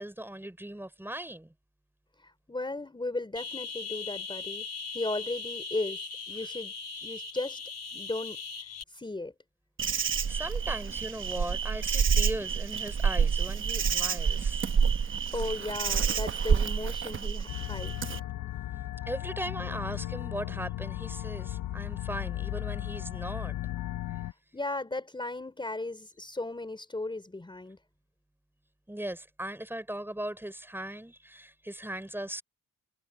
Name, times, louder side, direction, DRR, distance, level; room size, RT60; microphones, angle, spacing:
voice 1, 0.0-1.5 9.9-14.7 19.1-23.5 28.9-32.4, right 1 dB, 5° right, 5.6 m, -38 dB
voice 2, 2.2-4.7 4.9-6.7 7.0-7.6 7.9-8.4 8.9-9.3 15.3-18.2 24.5-27.8, left 2 dB, 15° left, 4.0 m, -36 dB
sound 1, 3.4-8.8, left 4 dB, 55° left, 2.9 m, -39 dB
Insect, 9.8-18.2, right 6 dB, 40° right, 1.1 m, -28 dB
sound 2, 17.5-24.3, left 14 dB, 90° left, 0.9 m, -36 dB
cardioid pair, 110°, 32 cm